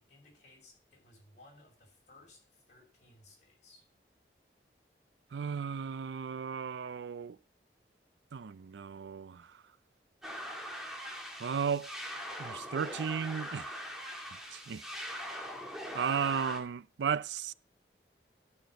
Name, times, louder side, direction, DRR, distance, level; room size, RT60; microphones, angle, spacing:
voice 1, 0.0-3.9, left 2 dB, 40° left, 6.3 m, -60 dB
voice 2, 5.3-7.4 8.3-9.5 11.4-11.9 12.4-13.8 14.5-14.8 15.9-17.5, right 7 dB, 80° right, 0.4 m, -35 dB
sound 1, 10.2-16.6, equal, ahead, 2.1 m, -42 dB
13.0 x 6.1 x 5.1 m
head